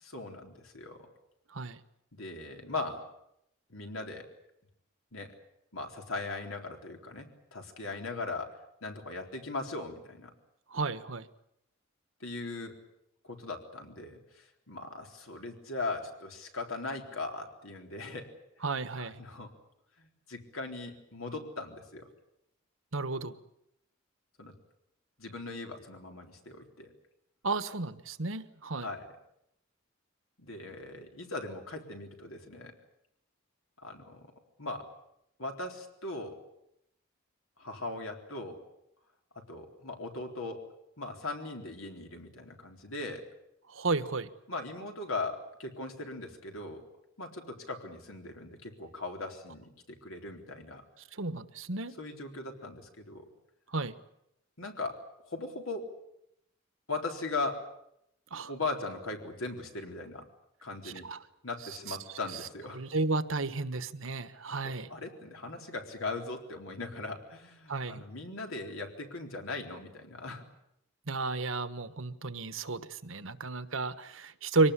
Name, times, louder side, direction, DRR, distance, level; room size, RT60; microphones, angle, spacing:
voice 1, 0.0-1.1 2.1-3.0 3.7-4.3 5.1-5.3 5.7-10.3 12.2-12.7 13.2-18.3 19.0-19.5 20.0-22.1 24.4-24.5 25.2-26.9 28.8-29.1 30.4-32.7 33.8-34.3 34.6-34.9 35.4-36.4 37.6-38.6 39.4-40.6 41.0-43.3 44.5-46.8 47.2-50.8 52.0-53.2 54.6-55.9 56.9-57.7 58.5-60.3 60.6-61.1 61.4-62.8 64.6-70.4, left 3 dB, 80° left, 3 dB, 4.0 m, -39 dB
voice 2, 10.7-11.3 18.6-19.2 22.9-23.4 27.4-28.9 43.7-44.3 51.2-52.0 53.7-53.9 58.3-58.5 60.8-61.2 61.9-62.0 62.7-64.9 67.7-68.0 71.1-74.7, right 3 dB, 70° right, 12 dB, 1.4 m, -32 dB
24.0 x 19.0 x 9.9 m, 0.79 s
head